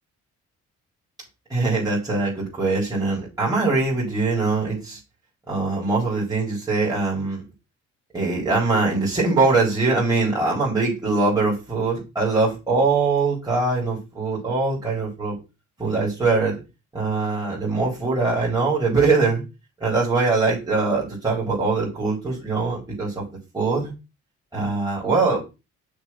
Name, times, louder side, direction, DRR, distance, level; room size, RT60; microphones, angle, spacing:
voice 1, 1.5-5.0 5.5-7.4 8.1-15.4 15.8-16.6 16.9-19.4 19.8-23.3 23.5-23.9 24.5-25.4, right 3 dB, 15° right, -6 dB, 3.6 m, -22 dB
6.2 x 3.5 x 5.5 m, 0.27 s
cardioid pair, 90°, 30 cm